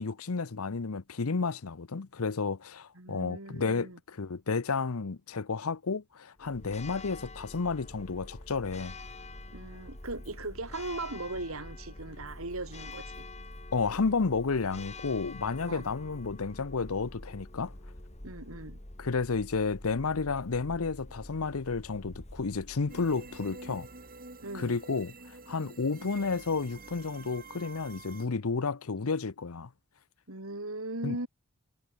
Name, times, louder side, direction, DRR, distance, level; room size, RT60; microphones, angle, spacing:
voice 1, 0.0-8.9 13.7-17.7 19.0-23.9 24.5-29.7 31.0-31.2, left 4 dB, 75° left, 0.8 m, -31 dB
voice 2, 3.0-4.0 9.5-13.2 15.7-15.8 18.2-18.8 24.4-24.8 30.3-31.3, right 2 dB, 70° right, 4.1 m, -38 dB
Church bell, 6.4-23.6, left 2 dB, 30° left, 2.4 m, -46 dB
sound 1, 22.9-28.3, right 3 dB, 45° right, 6.9 m, -48 dB
head